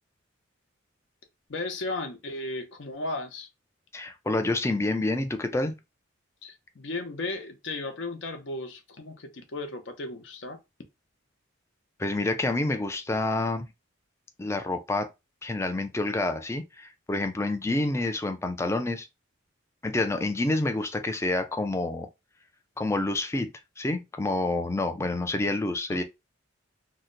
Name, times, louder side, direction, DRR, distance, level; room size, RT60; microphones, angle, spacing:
voice 1, 1.5-3.5 6.4-10.6 17.7-17.8 25.9-26.0, left 2 dB, 60° left, 0.7 m, -35 dB
voice 2, 3.9-5.8 12.0-13.7 14.4-15.1 15.4-19.1 19.8-22.1 22.8-23.5 23.8-26.0, left 2 dB, 15° left, 0.3 m, -28 dB
2.7 x 2.1 x 3.8 m
head